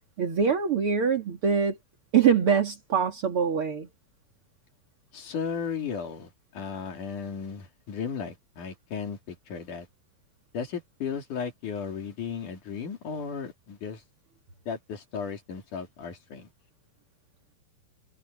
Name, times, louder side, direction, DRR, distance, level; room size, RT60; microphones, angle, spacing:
voice 1, 0.2-1.8 2.1-3.9, right 6 dB, 40° right, 2.6 m, -24 dB
voice 2, 5.1-9.9 10.5-14.0 14.7-16.5, left 6 dB, 50° left, 4.3 m, -35 dB
omnidirectional pair, 4.6 m